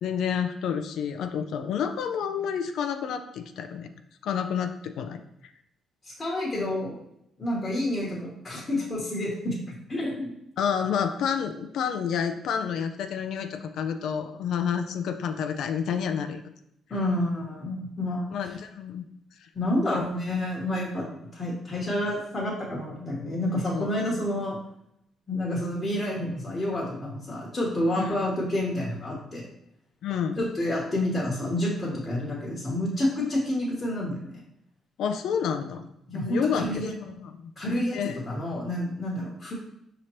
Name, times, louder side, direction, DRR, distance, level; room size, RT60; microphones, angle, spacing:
voice 1, 0.0-3.9 4.2-5.2 10.6-16.5 18.3-19.0 19.4-19.5 19.9-20.0 23.7-23.9 28.0-28.2 30.0-30.4 35.0-35.9 36.1-37.5 37.9-38.2, left 7 dB, 75° left, 8 dB, 0.3 m, -29 dB
voice 2, 6.0-7.0 7.4-10.3 16.9-18.3 19.5-21.1 21.3-24.6 25.3-29.5 30.4-34.4 36.1-36.9 37.6-38.0 38.3-39.5, left 1 dB, 30° left, -5 dB, 1.1 m, -29 dB
5.0 x 2.9 x 3.0 m, 0.78 s
cardioid pair, 90°, 0 cm